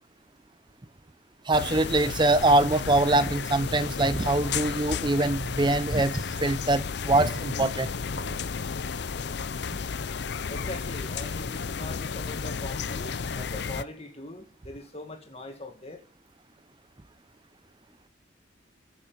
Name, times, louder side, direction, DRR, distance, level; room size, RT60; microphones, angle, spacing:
sound 1, 1.5-13.8, left 5 dB, 55° left, 0.5 m, -33 dB
voice 1, 1.5-7.9, right 2 dB, 25° right, 0.5 m, -23 dB
voice 2, 10.5-16.0, left 2 dB, 30° left, 2.1 m, -41 dB
14.0 x 7.1 x 7.0 m
head